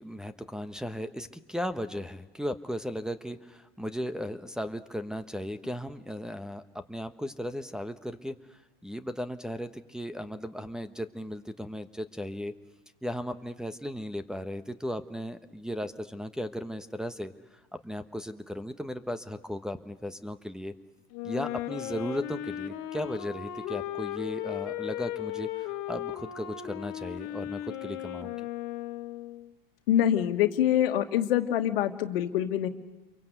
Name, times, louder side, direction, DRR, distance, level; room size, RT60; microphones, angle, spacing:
voice 1, 0.0-6.6 6.9-8.3 8.8-12.5 13.0-17.3 17.7-20.7 21.2-28.3, equal, ahead, 6 dB, 1.2 m, -36 dB
Wind instrument woodwind instrument, 21.1-29.5, left 13 dB, 60° left, 1.8 m, -36 dB
voice 2, 29.9-32.7, left 11 dB, 75° left, 8 dB, 1.7 m, -25 dB
28.5 x 23.5 x 8.1 m, 1.1 s
hypercardioid pair, 90°, 29 cm